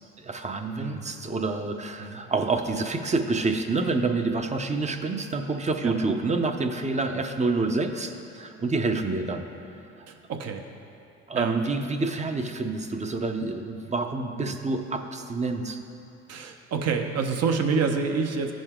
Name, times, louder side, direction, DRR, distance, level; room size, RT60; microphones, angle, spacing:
voice 1, 0.2-9.4 11.3-15.8, right 3 dB, 20° right, 6 dB, 0.8 m, -28 dB
voice 2, 10.1-10.6 11.3-11.5 14.4-14.6 16.3-18.5, right 5 dB, 55° right, 4 dB, 1.0 m, -28 dB
14.5 x 5.2 x 3.7 m, 2.9 s
supercardioid pair, 80°, 31 cm